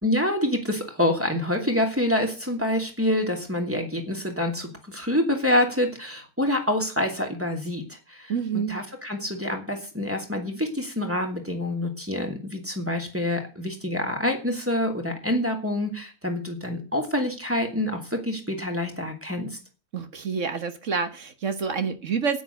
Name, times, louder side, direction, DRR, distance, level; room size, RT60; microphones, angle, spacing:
voice 1, 0.0-19.6, left 1 dB, 10° right, 3 dB, 2.6 m, -27 dB
voice 2, 8.3-8.8 19.9-22.4, right 6 dB, 55° right, 9 dB, 1.6 m, -28 dB
9.4 x 9.4 x 8.1 m, 0.36 s
omnidirectional pair, 1.6 m